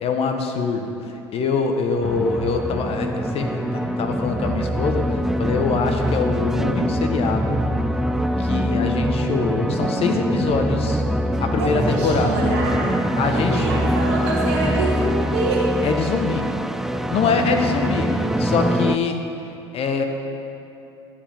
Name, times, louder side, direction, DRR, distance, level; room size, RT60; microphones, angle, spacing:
voice 1, 0.0-7.6 8.4-11.0 11.4-12.4 13.2-13.7 15.8-16.5 17.1-18.1 18.4-19.2 19.7-20.0, left 4 dB, 45° left, 4 dB, 1.0 m, -24 dB
sound 1, 2.0-19.0, equal, 5° right, 0.3 m, -23 dB
voice 2, 11.6-15.7, right 3 dB, 70° right, -4 dB, 1.5 m, -26 dB
11.0 x 7.8 x 3.5 m, 2.8 s
hypercardioid pair, 70°, 14 cm